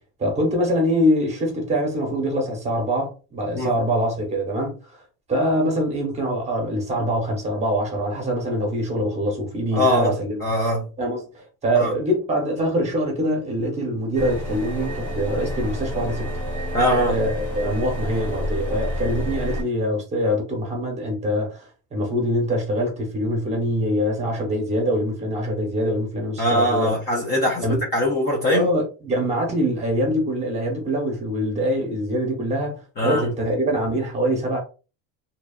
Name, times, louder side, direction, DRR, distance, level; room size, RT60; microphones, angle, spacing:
voice 1, 0.2-4.8 5.3-10.4 11.0-16.3 17.1-26.9 27.6-27.8 28.5-34.6, equal, 20° right, 0.9 m, -24 dB
voice 2, 9.7-10.9 11.7-11.9 16.7-17.2 26.4-28.7 33.0-33.3, equal, 30° left, 0.5 m, -22 dB
sound 1, 14.1-19.6, equal, 10° left, 0.9 m, -29 dB
2.8 x 2.3 x 2.3 m
cardioid pair, 170°, 37 cm